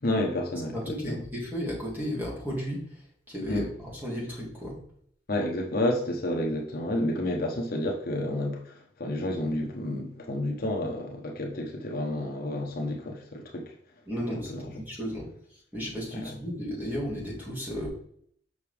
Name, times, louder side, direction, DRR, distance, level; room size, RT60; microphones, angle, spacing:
voice 1, 0.0-1.2 3.5-3.7 5.3-13.7 14.3-14.7 16.1-16.3, left 1 dB, 50° left, 1.1 m, -30 dB
voice 2, 0.7-3.0 3.3-4.7 14.1-15.3 15.7-17.9, equal, 10° right, 2.6 m, -34 dB
6.7 x 6.0 x 3.5 m
head